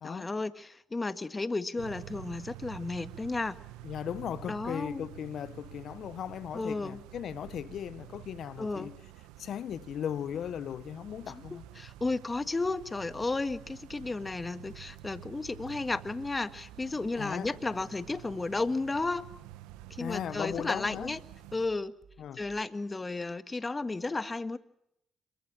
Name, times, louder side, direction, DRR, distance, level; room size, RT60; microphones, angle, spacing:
voice 1, 0.0-3.6 4.5-5.0 6.5-7.0 8.6-8.9 11.5-19.3 19.9-21.2 21.5-21.9 22.3-24.6, left 3 dB, 25° left, 1.7 m, -33 dB
sound 1, 1.8-21.7, right 15 dB, 85° right, 1.1 m, -49 dB
voice 2, 3.8-9.0 9.4-11.6 17.2-17.5 20.0-21.1 22.2-22.4, left 9 dB, 65° left, 0.8 m, -37 dB
sound 2, 10.4-22.8, right 5 dB, 40° right, 4.6 m, -59 dB
27.0 x 23.5 x 6.2 m
supercardioid pair, 55°, 0 cm